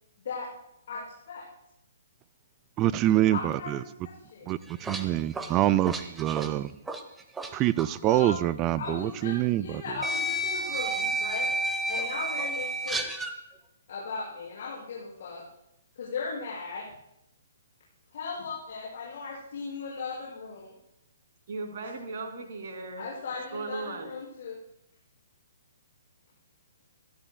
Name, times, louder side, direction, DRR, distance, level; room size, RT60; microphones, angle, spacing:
voice 1, 2.8-3.8 4.5-6.7 7.5-9.8, right 14 dB, 25° right, 0.4 m, -25 dB
voice 2, 3.3-4.5 8.0-8.3 8.7-11.5 11.9-13.1 13.9-15.4 15.9-16.9 18.1-20.7 23.0-24.6, left 4 dB, 50° left, 6.0 m, -37 dB
sound 1, 4.5-7.5 7.8-8.0 9.1-9.2 10.0-13.4, right 1 dB, 10° right, 1.0 m, -31 dB
voice 3, 21.5-23.1 23.5-24.1, right 3 dB, 45° right, 2.8 m, -37 dB
28.5 x 13.0 x 2.2 m
figure-of-eight pair, 125°, 0 cm